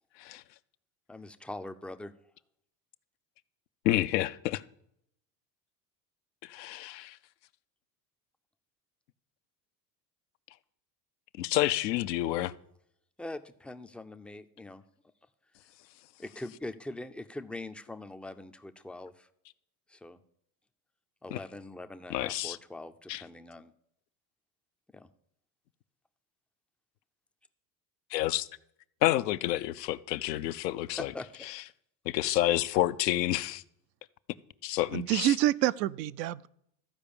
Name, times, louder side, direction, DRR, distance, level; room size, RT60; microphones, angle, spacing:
voice 1, 1.1-2.1 13.2-14.8 16.2-19.3 19.9-20.2 21.2-23.7 24.9-25.1 30.9-31.5, left 2 dB, 5° left, 0.3 m, -42 dB
voice 2, 3.8-4.6 6.4-7.2 11.4-12.5 21.3-21.4 22.1-22.6 23.1-23.2 28.1-28.5 29.0-31.1 31.5-31.6 32.1-33.6 34.6-35.3, left 15 dB, 85° left, 0.6 m, -29 dB
voice 3, 34.9-36.5, right 14 dB, 85° right, 0.5 m, -27 dB
13.5 x 4.8 x 6.8 m
hypercardioid pair, 85°, 48 cm